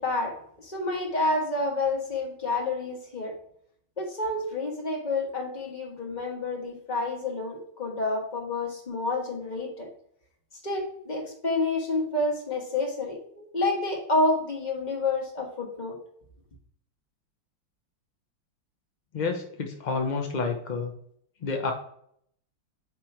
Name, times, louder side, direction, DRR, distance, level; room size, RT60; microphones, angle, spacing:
voice 1, 0.0-3.3 4.0-9.9 10.6-16.0, left 2 dB, 25° left, 0 dB, 1.3 m, -29 dB
voice 2, 19.1-20.9 21.4-21.7, left 4 dB, 75° left, 3 dB, 0.4 m, -29 dB
8.5 x 3.0 x 4.5 m, 0.67 s
omnidirectional pair, 2.0 m